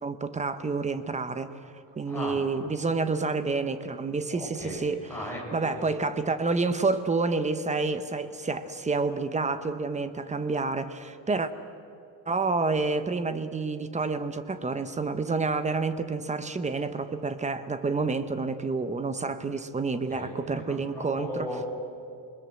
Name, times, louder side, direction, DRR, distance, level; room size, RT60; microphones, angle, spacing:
voice 1, 0.0-1.5 2.0-5.0 5.5-11.5 12.3-21.5, right 3 dB, 15° right, 11 dB, 0.9 m, -29 dB
voice 2, 2.1-2.4 4.3-5.9 20.1-21.7, equal, 5° left, -3 dB, 6.3 m, -37 dB
27.5 x 20.5 x 7.7 m, 2.6 s
cardioid pair, 170°, 42 cm